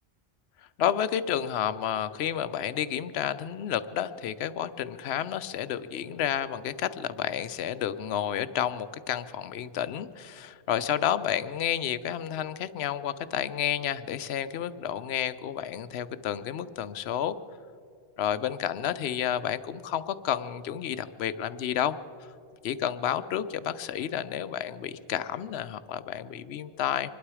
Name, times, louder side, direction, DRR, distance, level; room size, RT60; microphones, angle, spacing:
voice 1, 0.8-17.4 18.2-22.0 22.6-27.1, left 10 dB, 80° left, 13 dB, 0.9 m, -30 dB
25.0 x 12.0 x 4.9 m, 2.4 s
omnidirectional pair, 1.1 m